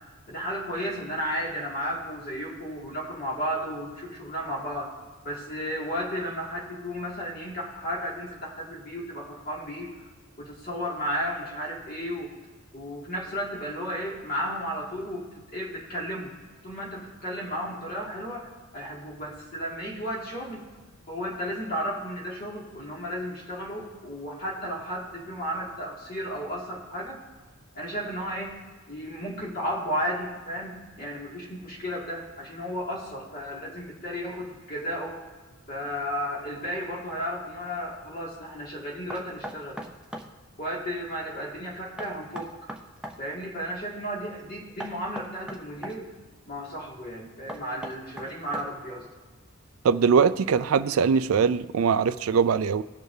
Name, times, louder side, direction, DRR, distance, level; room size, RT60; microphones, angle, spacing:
voice 1, 0.3-4.9 5.2-10.0 10.4-12.3 12.7-15.3 15.5-16.3 16.6-20.7 21.1-27.2 27.7-28.6 28.9-35.2 35.7-39.8 40.6-42.5 43.2-46.1 46.5-49.0, equal, 45° left, 2.1 m, -33 dB
Knock, 39.1-40.3 42.0-43.2 44.8-46.0 47.5-48.9, equal, 5° right, 0.5 m, -38 dB
voice 2, 49.8-52.8, right 6 dB, 80° right, 0.4 m, -22 dB
18.5 x 6.6 x 2.7 m
head